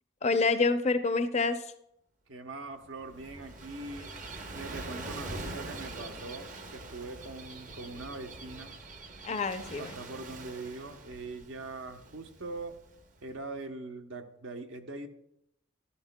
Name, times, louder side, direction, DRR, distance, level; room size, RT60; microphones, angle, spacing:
voice 1, 0.2-1.6 9.2-9.9, left 3 dB, 35° left, 9 dB, 0.5 m, -27 dB
voice 2, 2.3-4.1 4.5-8.7 9.7-12.8 13.2-15.1, right 2 dB, 75° right, 6 dB, 0.9 m, -42 dB
Gull seagull / Waves surf, 2.8-13.3, right 2 dB, 40° right, 0.8 m, -44 dB
14.5 x 12.0 x 2.2 m, 0.80 s
head